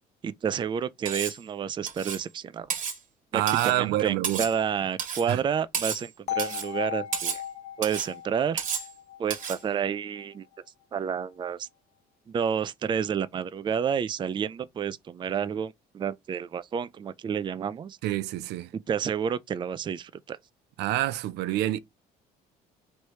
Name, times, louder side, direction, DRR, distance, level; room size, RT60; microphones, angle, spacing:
voice 1, 0.2-2.7 3.3-7.4 7.8-8.6 9.2-10.5 10.9-11.7 12.3-18.0 18.9-20.4, right 7 dB, 30° right, 0.4 m, -30 dB
Cutlery silverware, 1.1-1.4 1.9-2.3 2.7-3.0 3.5-3.8 4.2-4.6 5.0-5.3 5.7-6.1 6.4-6.7 7.1-7.4 7.8-8.1 8.6-8.9 9.3-9.6, right 7 dB, 50° right, 1.4 m, -32 dB
voice 2, 3.3-4.4 5.3-5.4 18.0-18.7 20.8-21.8, right 14 dB, 85° right, 0.5 m, -27 dB
sound 1, 6.3-10.3, left 11 dB, 40° left, 0.8 m, -37 dB
3.2 x 2.9 x 4.5 m
cardioid pair, 110°, 17 cm